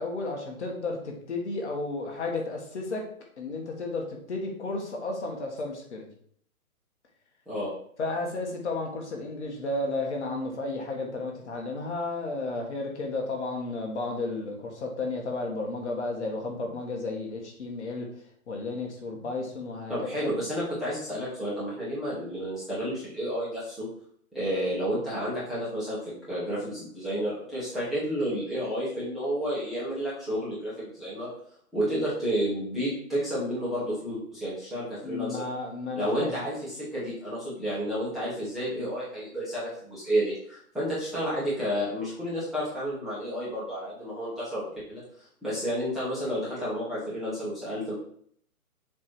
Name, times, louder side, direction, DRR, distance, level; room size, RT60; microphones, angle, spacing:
voice 1, 0.0-3.0 3.4-6.0 8.0-18.1 18.5-19.9 20.2-20.3 35.0-36.4, left 2 dB, 50° left, 1 dB, 1.8 m, -33 dB
voice 2, 19.9-23.9 24.3-31.3 31.7-35.4 35.9-45.0 45.4-47.9, equal, ahead, -12 dB, 1.5 m, -31 dB
7.2 x 3.4 x 4.7 m, 0.62 s
hypercardioid pair, 160°, 44 cm